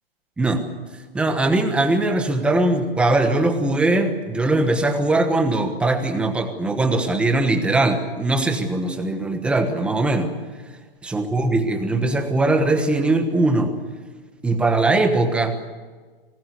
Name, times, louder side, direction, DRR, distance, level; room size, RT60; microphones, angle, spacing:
voice 1, 1.1-10.3 11.0-13.7 14.4-15.6, right 2 dB, 5° right, 6 dB, 1.2 m, -20 dB
23.5 x 19.5 x 8.4 m, 1.4 s
hypercardioid pair, 165°, 30 cm